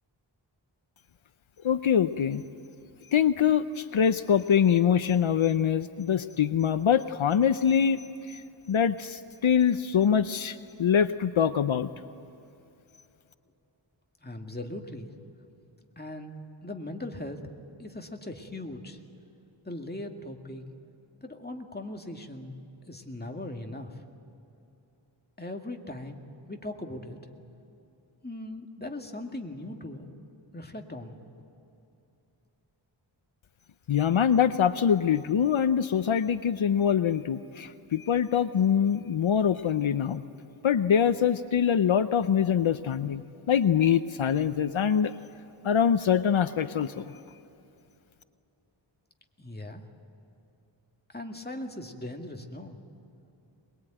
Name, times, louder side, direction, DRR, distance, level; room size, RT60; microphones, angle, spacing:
voice 1, 1.6-2.4 3.1-11.9 33.9-40.2 40.6-45.1 45.6-47.2, left 8 dB, 75° left, 12 dB, 0.7 m, -24 dB
voice 2, 14.2-15.1 16.0-16.4 16.6-17.4 17.8-19.0 19.6-20.6 21.2-22.6 22.9-24.0 25.4-26.2 26.5-27.2 28.2-30.1 30.5-31.2 49.4-49.8 51.1-52.8, left 1 dB, 20° left, 3 dB, 2.1 m, -39 dB
22.5 x 21.5 x 9.1 m, 2.8 s
wide cardioid pair, 60°, 48 cm